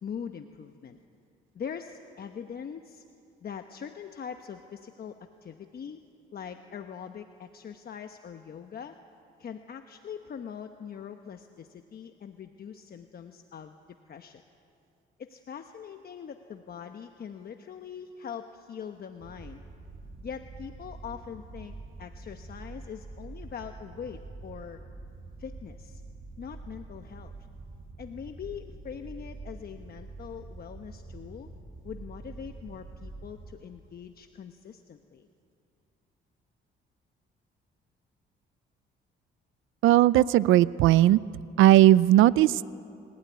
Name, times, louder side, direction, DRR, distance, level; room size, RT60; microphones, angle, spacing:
voice 1, 0.0-1.0 1.5-3.0 3.4-6.0 6.3-8.9 9.4-13.8 14.1-14.4 15.2-19.6 20.2-24.8 25.4-26.0 26.4-27.4 28.0-31.5 31.8-35.3, left 7 dB, 50° left, 6 dB, 1.1 m, -42 dB
sound 1, 19.2-33.5, right 2 dB, 45° right, 2.9 m, -45 dB
voice 2, 39.8-41.2 41.6-42.7, right 14 dB, 85° right, 19 dB, 0.5 m, -18 dB
26.5 x 16.0 x 9.5 m, 2.5 s
cardioid pair, 90°, 20 cm